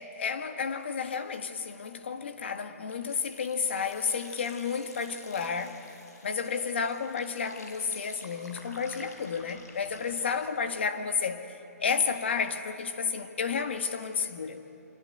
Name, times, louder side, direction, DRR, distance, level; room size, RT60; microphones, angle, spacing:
voice 1, 0.0-5.9 6.2-11.5 11.8-14.6, left 6 dB, 45° left, 1.6 m, -31 dB
sound 1, 2.9-10.5, left 2 dB, 85° left, 5.6 m, -51 dB
25.5 x 25.0 x 9.1 m
hypercardioid pair, 180°, 9 cm